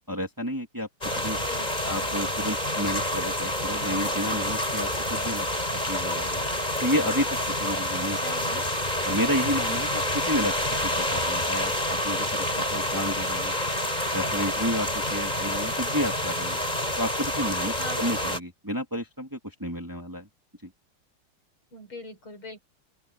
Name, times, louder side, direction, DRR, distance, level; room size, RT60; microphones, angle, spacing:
voice 1, 0.1-0.9 1.1-1.4 1.9-5.4 5.9-6.4 6.8-8.2 8.5-8.6 9.0-10.5 10.8-11.7 12.0-13.5 14.1-16.6 17.0-20.3 20.6-20.7, equal, 10° right, 2.9 m, -31 dB
sound 1, 1.0-18.4, left 1 dB, 20° left, 6.6 m, -28 dB
voice 2, 1.5-2.0 8.2-8.6 17.8-18.2 21.7-22.6, left 2 dB, 70° left, 6.4 m, -41 dB
open air
omnidirectional pair, 2.4 m